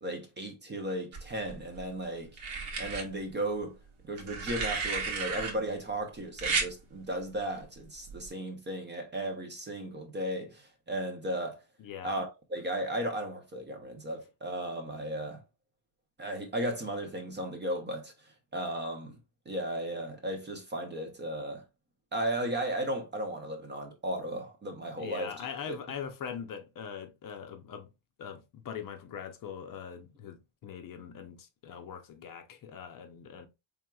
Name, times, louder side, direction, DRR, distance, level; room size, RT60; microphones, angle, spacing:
voice 1, 0.0-2.4 2.8-3.8 4.1-11.6 12.0-15.4 16.2-18.1 18.5-19.1 19.5-21.6 22.1-25.5, right 1 dB, 25° right, 0.5 m, -35 dB
sound 1, 1.1-1.8 2.4-3.0 4.2-5.5 6.4-6.7 8.1-8.3, right 4 dB, 75° right, 1.5 m, -33 dB
voice 2, 11.8-12.1 25.0-27.9 28.2-33.5, left 7 dB, 45° left, 0.6 m, -42 dB
4.4 x 3.5 x 2.2 m
cardioid pair, 180°, 48 cm